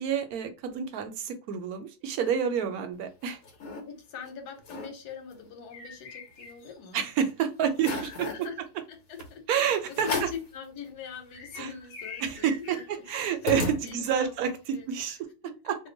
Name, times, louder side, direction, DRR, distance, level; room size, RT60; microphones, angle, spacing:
voice 1, 0.0-3.4 6.9-8.5 9.5-10.3 11.6-11.7 12.2-15.2 15.7-15.8, right 8 dB, 75° right, 7 dB, 1.0 m, -29 dB
sound 1, 3.0-3.8 4.3-4.4 4.6-4.9 5.3-6.9 7.3-7.4 7.8-8.5 9.2-9.3 9.9-10.5 11.0-11.1 11.3-14.3, left 3 dB, 65° left, 1.3 m, -36 dB
voice 2, 3.9-7.0 8.0-8.6 8.9-9.4 9.9-12.8 13.2-13.3 13.8-15.2 15.4-15.6, left 7 dB, 85° left, 5 dB, 1.3 m, -42 dB
2.9 x 2.1 x 3.8 m, 0.30 s
omnidirectional pair, 1.6 m